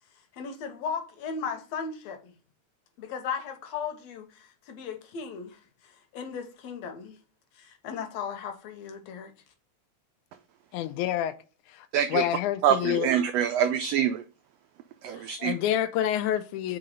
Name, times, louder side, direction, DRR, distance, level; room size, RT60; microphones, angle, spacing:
voice 1, 0.3-2.3 3.0-7.2 7.6-9.3, left 6 dB, 70° left, 2.0 m, -36 dB
voice 2, 10.7-11.3 11.7-13.1 15.2-16.8, left 11 dB, 85° left, 2.0 m, -28 dB
voice 3, 11.9-12.2 12.6-14.2 15.0-15.5, right 9 dB, 85° right, 1.5 m, -25 dB
4.9 x 3.8 x 5.3 m
omnidirectional pair, 3.4 m